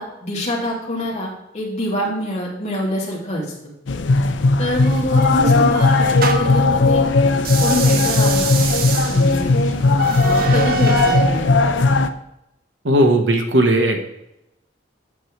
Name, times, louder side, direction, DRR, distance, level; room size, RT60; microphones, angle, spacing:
voice 1, 0.0-3.5 4.6-7.1 7.6-8.7 9.1-9.5 10.2-11.5, equal, 40° left, -4 dB, 2.6 m, -25 dB
sound 1, 3.9-12.1, left 3 dB, 80° left, 0.5 m, -17 dB
sound 2, 4.8-6.7 7.4-11.3, right 5 dB, 55° right, 0.8 m, -26 dB
voice 2, 12.8-14.1, right 1 dB, 80° right, 3 dB, 1.3 m, -16 dB
8.5 x 6.5 x 3.2 m, 0.85 s
head